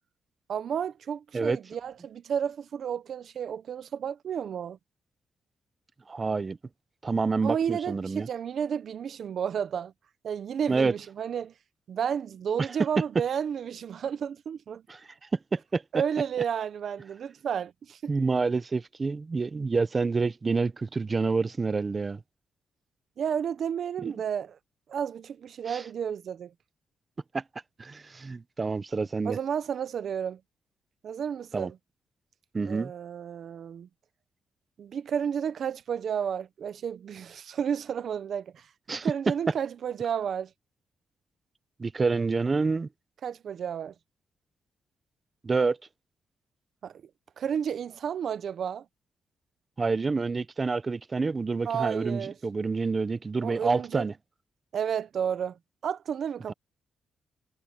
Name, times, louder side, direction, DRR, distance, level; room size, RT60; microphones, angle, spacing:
voice 1, 0.5-4.8 7.4-9.9 10.2-11.5 11.9-14.8 15.9-18.0 23.2-24.6 24.9-26.5 29.2-30.4 31.0-31.8 32.7-33.9 34.8-40.5 43.2-43.9 46.8-47.0 47.4-48.9 51.6-52.4 53.4-54.1 54.7-56.5, right 8 dB, 65° right, 0.8 m, -32 dB
voice 2, 6.1-6.6 7.0-8.3 10.7-10.9 14.9-15.0 15.3-15.8 18.1-22.2 24.0-24.1 25.7-25.8 27.3-27.4 27.8-29.4 31.5-31.7 32.5-32.9 38.9-39.1 41.8-42.9 45.4-45.8 49.8-54.1, right 4 dB, 30° right, 0.7 m, -28 dB
cardioid pair, 105°, 0 cm